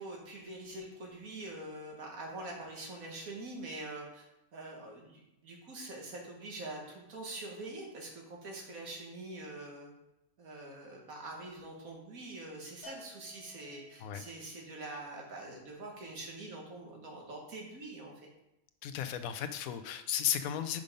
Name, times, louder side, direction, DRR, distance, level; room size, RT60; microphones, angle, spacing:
voice 1, 0.0-4.3 4.5-9.9 10.4-18.3, right 2 dB, 90° right, 0 dB, 1.9 m, -44 dB
Bell, 12.8-14.2, left 1 dB, 30° right, 2.5 m, -53 dB
voice 2, 18.8-20.8, left 9 dB, 85° left, 10 dB, 1.1 m, -34 dB
6.2 x 5.3 x 5.3 m, 0.89 s
omnidirectional pair, 1.4 m